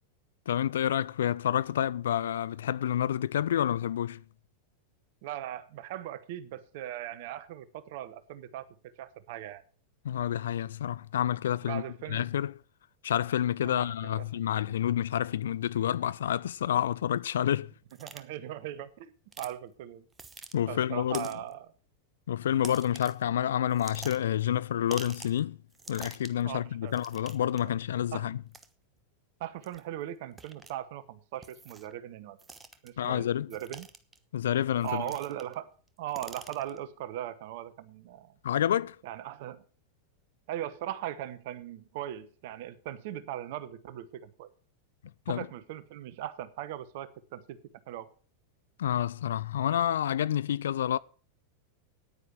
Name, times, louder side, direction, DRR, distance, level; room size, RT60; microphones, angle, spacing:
voice 1, 0.5-4.2 10.0-11.8 12.1-12.5 13.0-17.7 20.5-21.3 22.3-25.6 25.9-28.4 33.0-33.5 34.3-35.0 38.4-39.0 45.3-45.5 48.8-51.0, left 10 dB, 60° left, 0.5 m, -29 dB
voice 2, 5.2-8.7 9.0-9.6 11.7-12.3 13.6-14.4 18.0-20.1 20.7-21.7 26.4-26.9 28.1-28.3 29.4-32.4 32.8-33.9 34.8-35.7 36.0-38.3 39.0-39.6 40.5-44.5 45.3-47.6 47.9-48.1, right 12 dB, 50° right, 0.9 m, -39 dB
sound 1, 17.9-18.2 19.3-19.5 20.1-20.5 21.1-21.5 22.6-23.2 23.7-24.4 24.9-25.4 25.7-26.4 26.9-27.6 28.5-28.7 29.6-29.8 30.4-30.7 31.4-31.9 32.4-32.9 33.5-34.2 34.8-35.5 35.9-36.8, right 4 dB, 15° right, 1.1 m, -46 dB
9.8 x 9.7 x 6.1 m
figure-of-eight pair, 90°, 0 cm